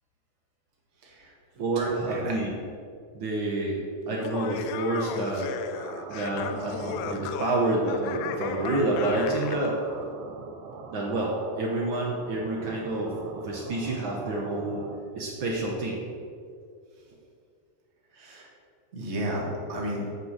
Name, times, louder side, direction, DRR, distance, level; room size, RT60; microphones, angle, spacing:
voice 1, 1.0-1.3 1.7-2.3 18.1-18.5 18.9-20.0, equal, 40° right, -2 dB, 1.0 m, -33 dB
voice 2, 1.6-2.5 3.1-5.5 6.1-9.8 10.9-13.1 13.4-14.8 15.1-16.0, right 2 dB, 90° right, -2 dB, 1.0 m, -28 dB
Laughter, 4.1-9.7, left 8 dB, 80° left, 1.7 m, -36 dB
sound 1, 5.7-15.0, right 4 dB, 75° right, 2.0 m, -42 dB
7.5 x 5.4 x 6.5 m, 2.3 s
omnidirectional pair, 3.6 m